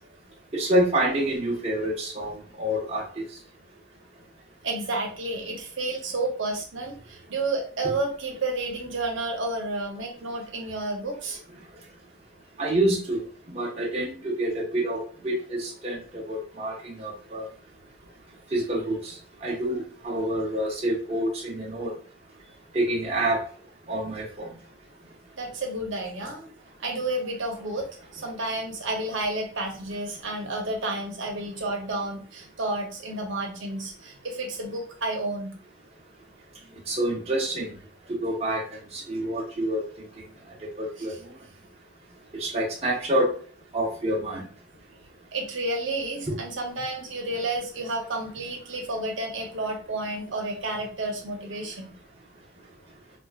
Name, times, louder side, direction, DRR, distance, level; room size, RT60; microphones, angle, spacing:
voice 1, 0.5-3.2 12.6-13.2 13.5-17.5 18.5-21.9 22.7-23.4 23.9-24.5 36.9-37.7 38.2-39.8 40.8-41.1 42.3-43.3 43.7-44.4 46.3-46.4, right 1 dB, 30° right, -3 dB, 0.7 m, -27 dB
voice 2, 4.6-11.4 25.4-26.5 26.8-35.5 36.6-36.7 39.1-39.2 41.0-41.1 45.3-51.9, right 2 dB, 70° right, 1 dB, 0.8 m, -31 dB
4.3 x 2.3 x 2.4 m, 0.44 s
head